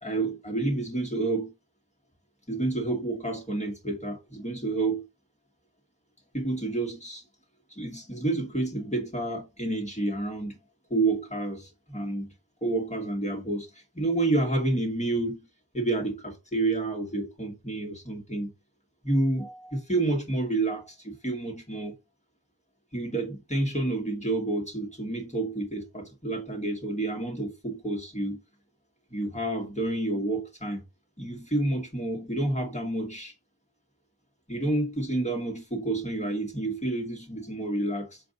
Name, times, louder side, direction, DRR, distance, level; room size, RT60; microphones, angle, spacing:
voice 1, 0.0-1.5 2.5-5.0 6.3-7.2 7.7-10.6 10.9-12.3 12.6-15.5 15.7-18.5 19.0-21.9 22.9-28.4 29.1-30.8 31.2-33.3 34.5-38.2, right 2 dB, 20° left, 1.5 m, -29 dB
4.6 x 2.6 x 3.8 m
wide cardioid pair, 40°, 37 cm